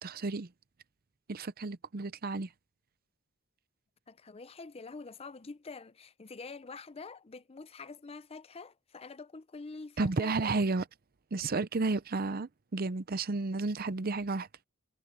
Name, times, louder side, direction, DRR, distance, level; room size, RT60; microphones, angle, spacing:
voice 1, 0.0-0.5 1.3-2.5 10.0-10.8 11.3-14.5, right 3 dB, 45° right, 0.6 m, -32 dB
voice 2, 4.1-10.7, left 4 dB, 30° left, 0.5 m, -46 dB
head